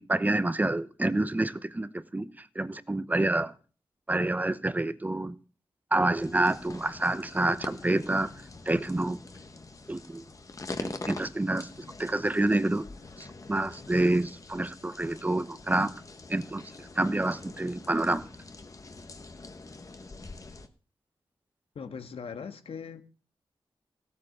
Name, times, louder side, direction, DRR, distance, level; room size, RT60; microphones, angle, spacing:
voice 1, 0.0-3.5 4.1-5.4 5.9-8.3 8.7-9.2 9.9-10.2 10.8-11.7 12.0-12.8 13.2-16.0 16.3-18.3, right 2 dB, 15° right, 0.9 m, -28 dB
sound 1, 6.1-20.7, left 3 dB, 35° left, 1.4 m, -44 dB
voice 2, 21.7-23.1, left 6 dB, 90° left, 1.6 m, -40 dB
16.0 x 8.7 x 6.6 m
wide cardioid pair, 120°, 10 cm